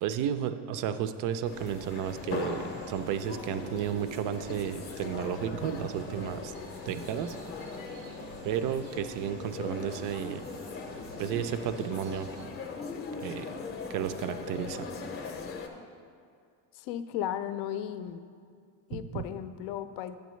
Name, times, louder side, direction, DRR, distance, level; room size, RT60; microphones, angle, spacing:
voice 1, 0.0-6.5 6.9-7.4 8.4-10.4 11.2-12.3 13.2-13.5 13.9-14.9 19.1-19.2, right 9 dB, 50° right, 11 dB, 0.4 m, -32 dB
sound 1, 1.4-15.7, left 4 dB, 30° left, 0.7 m, -40 dB
sound 2, 1.5-12.5, right 3 dB, 90° right, 1.2 m, -52 dB
voice 2, 16.7-18.2 18.9-20.2, left 10 dB, 70° left, 11 dB, 0.6 m, -35 dB
8.5 x 8.1 x 3.1 m, 2.2 s
cardioid pair, 135°, 42 cm